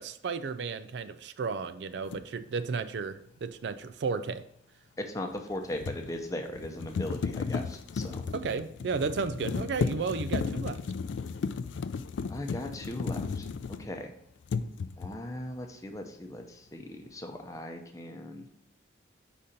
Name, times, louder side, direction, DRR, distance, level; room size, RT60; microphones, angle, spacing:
voice 1, 0.0-4.4 8.3-10.8, right 5 dB, 70° right, 11 dB, 0.4 m, -33 dB
sound 1, 2.1-2.3 5.3-14.1 14.4-15.3, left 5 dB, 85° left, 0.4 m, -34 dB
voice 2, 5.0-8.2 12.3-14.1 15.0-18.5, left 1 dB, 20° left, 4 dB, 0.7 m, -38 dB
5.0 x 4.3 x 5.1 m, 0.70 s
head